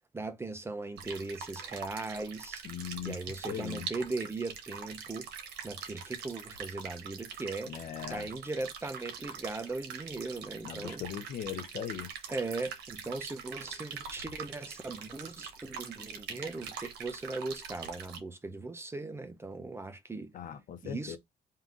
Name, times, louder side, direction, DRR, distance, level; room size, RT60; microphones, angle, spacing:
voice 1, 0.1-2.6 3.0-5.3 5.6-7.7 8.1-11.0 12.3-20.3 20.8-21.2, right 3 dB, 15° right, 0.7 m, -38 dB
sound 1, 1.0-18.2, right 7 dB, 75° right, 1.2 m, -43 dB
voice 2, 2.6-3.2 3.5-3.9 7.7-8.3 10.6-12.1 20.3-21.2, left 9 dB, 55° left, 0.7 m, -39 dB
3.6 x 2.8 x 3.8 m
cardioid pair, 110°, 17 cm